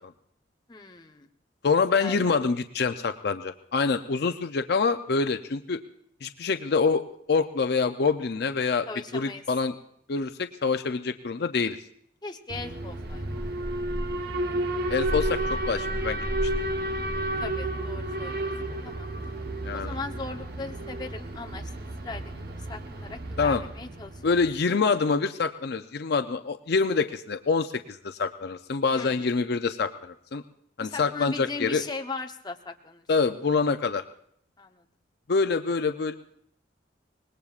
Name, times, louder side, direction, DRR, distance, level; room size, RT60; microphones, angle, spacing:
voice 1, 0.7-1.3 1.9-2.3 8.9-9.4 12.2-13.2 13.6-13.7 17.4-18.5 18.8-19.1 19.7-21.7 22.0-22.3 22.7-24.1 28.9-29.3 30.8-33.0 34.6-34.8, left 3 dB, 25° left, 3 dB, 0.9 m, -38 dB
voice 2, 1.6-5.8 6.2-8.9 9.1-9.7 10.1-11.8 14.9-16.3 19.6-20.0 23.4-23.6 24.2-30.4 30.8-31.8 33.1-34.0 35.3-36.1, left 4 dB, 60° left, 8 dB, 0.5 m, -26 dB
Alarm, 12.5-24.5, right 1 dB, 55° right, 1.0 m, -31 dB
25.0 x 20.0 x 2.4 m, 0.68 s
head